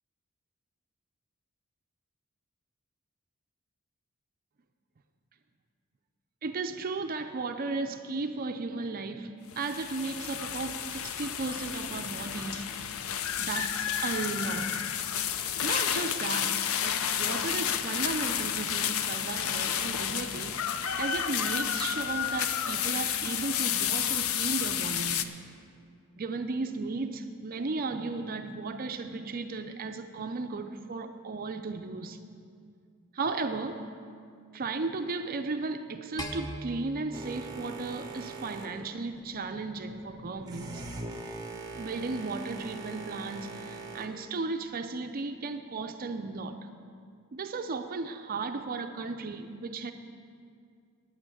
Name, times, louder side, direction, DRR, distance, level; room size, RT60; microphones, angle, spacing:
voice 1, 6.4-12.7 13.4-14.8 15.6-25.3 26.2-32.2 33.1-33.8 34.5-40.9 41.8-46.6 47.3-49.9, right 3 dB, 40° right, 7 dB, 0.5 m, -35 dB
sound 1, 9.5-25.2, left 9 dB, 65° left, 0.5 m, -31 dB
sound 2, 36.2-38.6, equal, 15° left, 0.9 m, -41 dB
Boat Water vehicle, 37.1-44.1, right 3 dB, 15° right, 0.9 m, -42 dB
9.7 x 8.6 x 7.8 m, 2.3 s
head